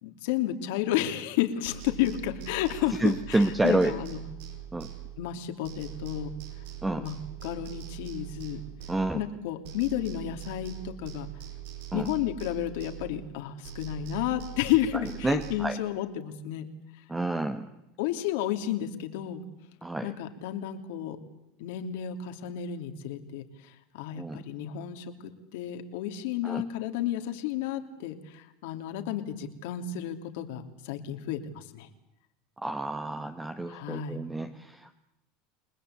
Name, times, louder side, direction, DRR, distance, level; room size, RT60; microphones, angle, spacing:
voice 1, 0.0-4.2 5.2-6.3 6.9-7.2 7.4-8.6 9.1-11.3 11.9-16.7 18.0-19.4 20.0-21.2 21.6-23.4 23.9-31.9 33.7-34.2, left 11 dB, 75° left, 7 dB, 3.0 m, -32 dB
sound 1, 1.6-5.4 5.6-9.4 9.6-13.4 13.6-15.6, right 12 dB, 80° right, 4.9 m, -42 dB
voice 2, 3.0-3.9 4.7-4.9 6.8-7.1 8.9-9.2 11.9-12.1 15.2-15.8 17.1-17.7 19.8-20.1 24.2-24.4 26.4-26.6 32.6-34.9, right 2 dB, 10° right, 8 dB, 1.3 m, -29 dB
30.0 x 20.0 x 8.3 m, 0.89 s
supercardioid pair, 130°, 0 cm